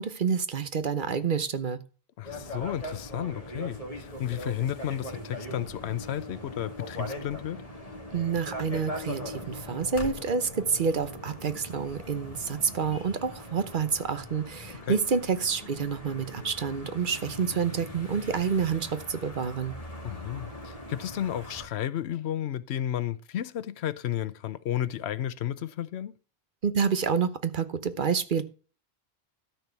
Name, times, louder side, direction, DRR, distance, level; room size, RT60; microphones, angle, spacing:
voice 1, 0.0-1.8 8.1-19.8 26.6-28.4, right 6 dB, 55° right, 1.0 m, -28 dB
voice 2, 2.2-7.6 14.8-15.0 20.0-26.1, left 11 dB, 90° left, 0.9 m, -32 dB
sound 1, 2.2-21.7, left 1 dB, 35° left, 2.0 m, -40 dB
sound 2, 8.4-17.4, equal, 5° left, 2.9 m, -56 dB
13.0 x 4.5 x 6.9 m
omnidirectional pair, 1.1 m